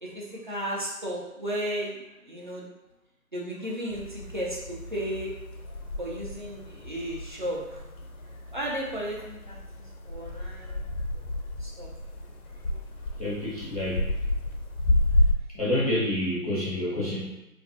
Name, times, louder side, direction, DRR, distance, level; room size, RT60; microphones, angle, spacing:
voice 1, 0.0-2.7 3.3-5.3 6.0-7.8 8.5-9.6 10.1-10.9 11.6-11.9, equal, 35° right, -5 dB, 0.4 m, -34 dB
sound 1, 3.9-15.3, left 1 dB, 85° left, 0.6 m, -31 dB
voice 2, 13.2-14.1 15.5-17.3, left 1 dB, 30° left, -9 dB, 0.4 m, -28 dB
2.4 x 2.2 x 2.4 m, 0.97 s
figure-of-eight pair, 150°, 43 cm